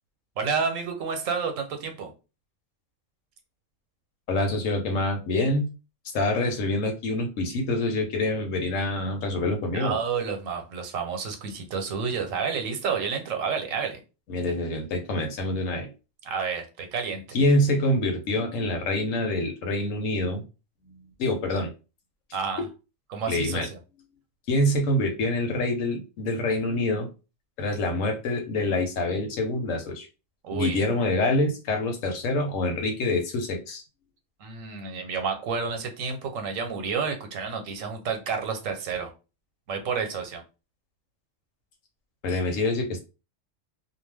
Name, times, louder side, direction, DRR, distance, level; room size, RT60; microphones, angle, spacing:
voice 1, 0.4-2.1 9.7-14.0 16.3-17.2 22.3-22.7 23.1-23.8 30.4-30.8 34.4-39.1 39.7-40.4, right 5 dB, 85° right, 5 dB, 1.1 m, -30 dB
voice 2, 4.3-5.7 6.1-10.0 14.3-15.9 17.3-20.4 20.9-21.7 23.3-23.7 24.5-27.1 27.6-30.1 30.5-33.8 42.2-43.0, left 1 dB, 80° left, 5 dB, 1.1 m, -26 dB
2.5 x 2.2 x 3.3 m, 0.31 s
omnidirectional pair, 1.3 m